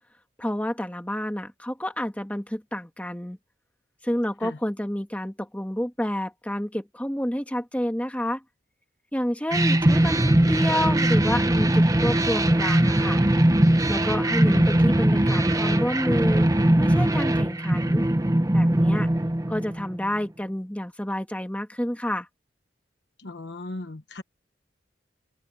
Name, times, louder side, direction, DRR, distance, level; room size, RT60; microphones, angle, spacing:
voice 1, 0.4-3.4 4.0-8.4 9.1-13.2 13.9-16.5 16.8-18.0 18.5-19.1 19.5-22.3, left 1 dB, 10° left, 1.5 m, -29 dB
sound 1, 9.5-20.0, right 1 dB, 20° right, 0.8 m, -21 dB
voice 2, 23.2-24.2, left 2 dB, 65° left, 1.2 m, -37 dB
head